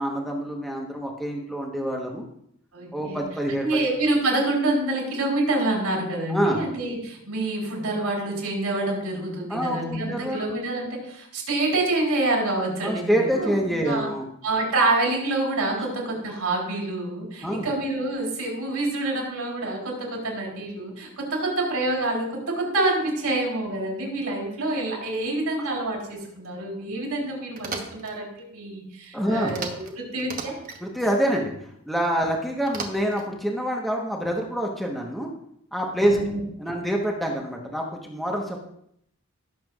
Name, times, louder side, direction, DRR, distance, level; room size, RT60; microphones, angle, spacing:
voice 1, 0.0-2.2 2.9-3.8 6.3-6.6 9.5-10.4 12.8-14.3 17.4-17.7 25.6-25.7 29.1-29.6 30.8-35.3 35.7-36.2 36.6-38.6, equal, ahead, -1 dB, 1.1 m, -26 dB
voice 2, 2.7-13.5 13.9-14.1 14.4-30.6 36.0-36.4, right 2 dB, 90° right, -1 dB, 3.8 m, -27 dB
sound 1, 27.5-28.1 29.5-29.9 30.2-30.8 32.7-33.3, right 4 dB, 40° right, 1.1 m, -35 dB
17.0 x 7.2 x 2.4 m, 0.72 s
head